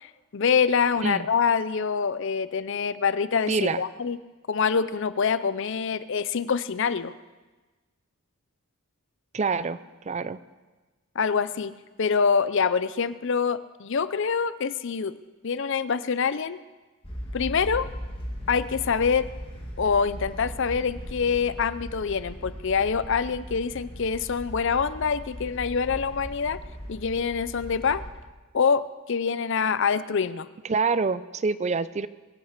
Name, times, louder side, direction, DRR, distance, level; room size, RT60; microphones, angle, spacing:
voice 1, 0.0-4.2 4.5-7.1 11.2-15.1 15.4-16.6 17.3-17.9 18.5-19.3 19.8-26.6 26.9-28.0 28.5-30.5, left 6 dB, 55° left, 15 dB, 0.5 m, -25 dB
voice 2, 3.5-3.8 9.3-9.8 10.0-10.4 30.7-32.1, right 4 dB, 30° right, 15 dB, 0.4 m, -26 dB
sound 1, 17.0-28.1, equal, 25° left, 2.1 m, -38 dB
22.5 x 8.7 x 6.6 m, 1.2 s
head